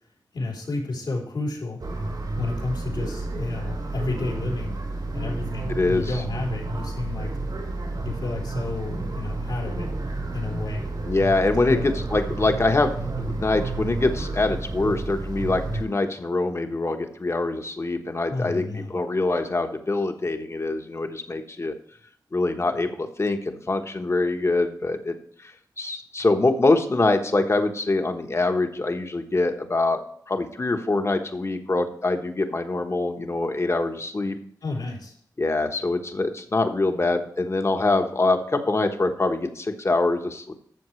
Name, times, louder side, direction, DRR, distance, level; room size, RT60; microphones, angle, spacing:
voice 1, 0.3-1.8 2.4-4.7 5.1-7.3 8.0-9.9 10.3-10.9 11.7-11.9 18.3-18.9 34.6-35.1, left 2 dB, 85° left, -2 dB, 3.4 m, -31 dB
sound 1, 1.8-15.8, right 2 dB, 75° right, 2.9 m, -31 dB
voice 2, 5.7-6.2 11.1-21.7 22.3-30.0 30.3-34.4 35.4-40.5, left 2 dB, 40° left, 6 dB, 1.2 m, -24 dB
12.5 x 7.3 x 3.2 m, 0.62 s
wide cardioid pair, 80°, 7 cm